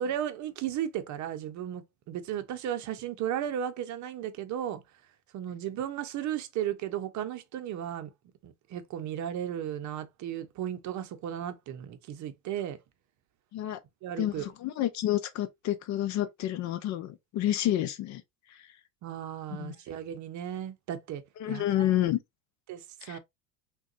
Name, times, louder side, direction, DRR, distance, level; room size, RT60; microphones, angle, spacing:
voice 1, 0.0-4.8 5.3-8.1 8.4-12.8 14.0-14.5 19.0-21.2 21.5-21.9 22.7-23.2, right 10 dB, 45° right, 0.7 m, -35 dB
voice 2, 14.2-18.2 19.6-19.7 21.4-22.2 23.0-23.2, left 13 dB, 45° left, 0.5 m, -29 dB
3.6 x 2.3 x 2.4 m
hypercardioid pair, 85°, 41 cm